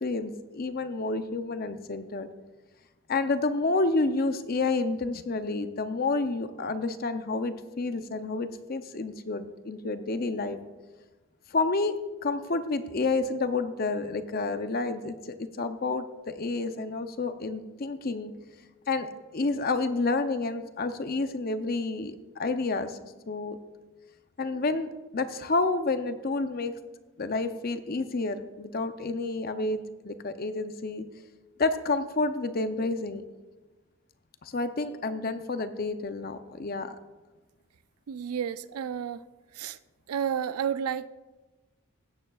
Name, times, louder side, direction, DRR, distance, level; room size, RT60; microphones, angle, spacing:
voice 1, 0.0-2.3 3.1-10.6 11.5-12.0 12.2-18.3 18.9-23.6 24.4-26.7 27.2-31.0 31.6-33.2 34.4-36.9, left 3 dB, 40° left, 10 dB, 0.5 m, -29 dB
voice 2, 38.1-39.2 39.5-39.8 40.1-41.1, right 8 dB, 80° right, 15 dB, 0.4 m, -31 dB
16.5 x 8.9 x 2.3 m, 1.2 s
head